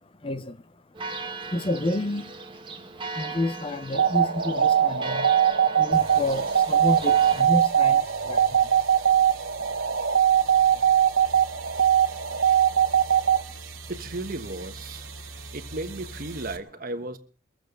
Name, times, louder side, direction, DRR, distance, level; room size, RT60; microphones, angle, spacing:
voice 1, 0.2-0.6 1.5-2.3 3.2-5.3 5.8-8.0 8.3-8.4, left 1 dB, 25° left, 0.6 m, -29 dB
Church bell, 0.9-7.4, right 3 dB, 25° right, 1.5 m, -38 dB
sound 1, 3.9-13.4, right 9 dB, 60° right, 1.1 m, -21 dB
sound 2, 5.9-16.6, right 4 dB, 85° right, 2.5 m, -42 dB
voice 2, 13.9-15.1 15.5-17.2, right 2 dB, 45° right, 1.4 m, -34 dB
23.0 x 7.9 x 6.7 m
head